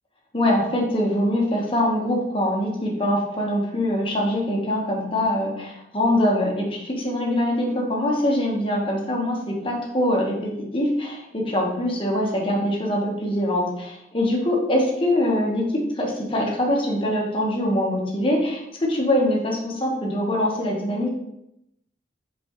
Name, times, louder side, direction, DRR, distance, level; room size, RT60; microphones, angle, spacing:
voice 1, 0.3-21.1, left 1 dB, 30° left, -2 dB, 1.4 m, -23 dB
6.9 x 4.7 x 3.1 m, 0.82 s
head